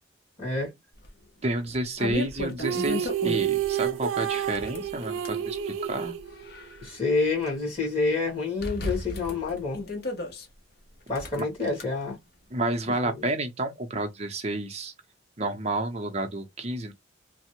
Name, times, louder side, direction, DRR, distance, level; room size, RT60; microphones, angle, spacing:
voice 1, 0.4-0.7 6.8-9.8 11.1-12.2 13.0-13.3, left 3 dB, 30° left, 1.8 m, -28 dB
sound 1, 1.0-1.1 1.6-3.7 4.4-5.4 6.1-7.5 7.8-7.9 8.6-10.5 11.1-11.8, left 1 dB, 50° left, 0.7 m, -35 dB
voice 2, 1.4-6.2 11.3-11.4 12.5-14.9 15.4-16.9, right 2 dB, 30° right, 0.6 m, -30 dB
sound 2, 2.6-6.8, right 9 dB, 80° right, 0.3 m, -29 dB
3.2 x 2.0 x 2.9 m
head